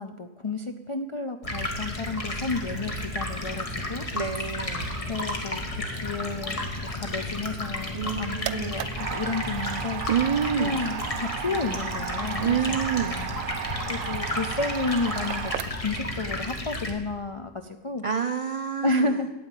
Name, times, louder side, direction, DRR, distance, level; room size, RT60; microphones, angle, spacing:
voice 1, 0.0-4.0 5.1-8.9 9.1-10.0 10.6-13.3 13.9-15.5 15.8-18.0 18.8-19.3, left 3 dB, 55° left, 5 dB, 0.3 m, -31 dB
Stream, 1.4-16.9, left 1 dB, 30° left, 1.5 m, -32 dB
voice 2, 4.1-4.9 7.9-8.8 10.1-10.8 12.4-13.2 18.0-19.2, right 7 dB, 60° right, 8 dB, 0.3 m, -28 dB
sound 1, 7.9-16.0, right 11 dB, 85° right, 1.0 m, -35 dB
9.2 x 8.6 x 8.9 m, 1.2 s
omnidirectional pair, 1.3 m